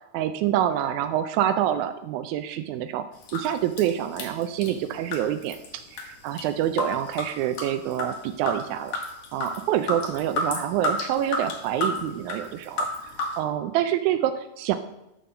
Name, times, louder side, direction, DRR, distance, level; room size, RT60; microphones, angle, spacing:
voice 1, 0.1-3.0 3.3-9.0 9.3-14.8, right 11 dB, 80° right, 8 dB, 1.8 m, -27 dB
sound 1, 3.2-3.5 3.8-4.8 5.1-5.7 6.0-6.4 6.8-8.1 8.5-8.6 8.9-13.3, left 2 dB, 65° left, 2.4 m, -30 dB
10.5 x 3.8 x 6.7 m, 0.89 s
omnidirectional pair, 3.6 m